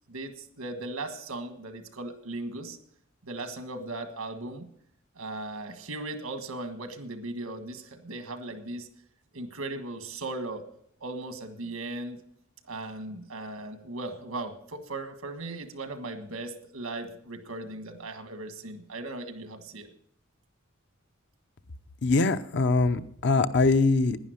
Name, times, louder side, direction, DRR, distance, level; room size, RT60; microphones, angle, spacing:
voice 1, 0.1-2.8 3.2-4.7 5.1-8.9 9.3-10.6 11.0-12.2 12.7-19.9, right 2 dB, 90° right, 8 dB, 1.6 m, -37 dB
voice 2, 22.0-24.2, left 3 dB, 55° left, 11 dB, 0.7 m, -23 dB
11.0 x 10.0 x 6.4 m, 0.65 s
head